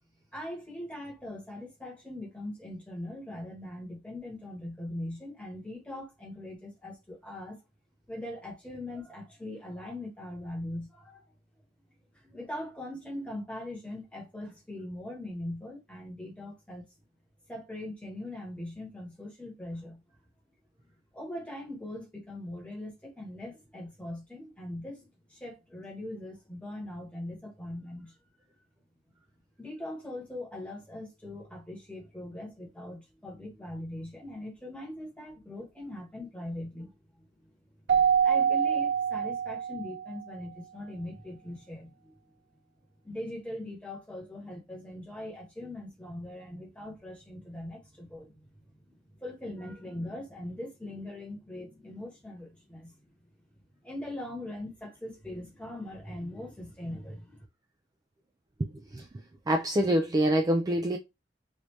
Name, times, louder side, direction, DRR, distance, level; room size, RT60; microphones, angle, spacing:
voice 1, 0.3-7.6 8.1-11.2 12.2-16.8 17.5-20.0 21.1-28.1 29.6-37.2 38.2-42.2 43.0-48.5 48.8-52.9 53.8-57.4, left 1 dB, 5° left, 1.2 m, -41 dB
Keyboard (musical), 37.9-40.2, right 8 dB, 70° right, 0.7 m, -25 dB
voice 2, 58.6-59.1 59.5-61.0, right 1 dB, 20° right, 0.3 m, -26 dB
3.3 x 2.6 x 3.1 m
head